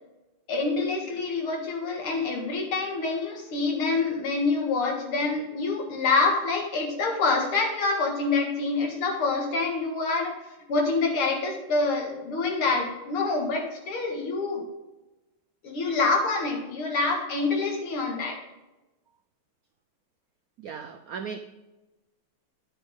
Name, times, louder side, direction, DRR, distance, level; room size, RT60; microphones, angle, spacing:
voice 1, 0.5-10.4 10.7-14.6 15.6-18.4, left 3 dB, 85° left, 2 dB, 2.8 m, -26 dB
voice 2, 20.6-21.4, right 6 dB, 80° right, 7 dB, 0.8 m, -36 dB
10.5 x 8.8 x 3.7 m, 1.1 s
omnidirectional pair, 2.3 m